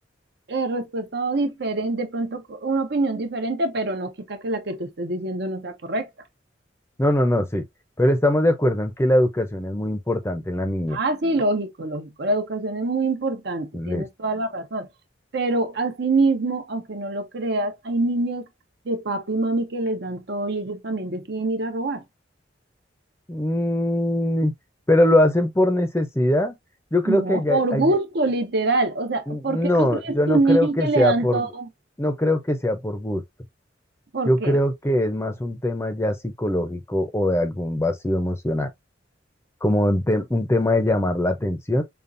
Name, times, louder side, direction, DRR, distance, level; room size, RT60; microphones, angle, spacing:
voice 1, 0.5-6.1 10.9-14.9 15.3-18.4 18.9-22.0 27.1-31.7 34.1-34.6, right 2 dB, 60° right, 0.8 m, -25 dB
voice 2, 7.0-7.6 8.0-11.0 13.7-14.1 23.3-24.5 24.9-26.6 26.9-28.0 29.3-31.5 32.0-33.2 34.3-38.7 39.6-41.8, left 1 dB, 15° left, 0.6 m, -22 dB
5.2 x 2.4 x 2.5 m
head